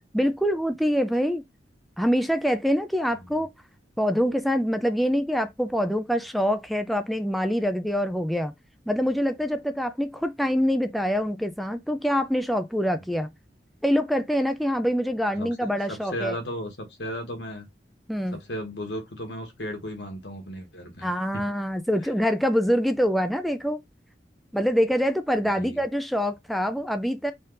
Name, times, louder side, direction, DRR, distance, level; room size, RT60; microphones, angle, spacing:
voice 1, 0.1-1.4 2.0-3.5 4.0-8.5 8.9-13.3 13.8-16.4 18.1-18.4 21.0-23.8 24.5-27.3, equal, ahead, 0.4 m, -25 dB
voice 2, 15.3-17.7 18.3-21.4 22.0-22.1 25.4-25.8, equal, 80° left, 1.6 m, -35 dB
4.3 x 2.5 x 3.9 m
head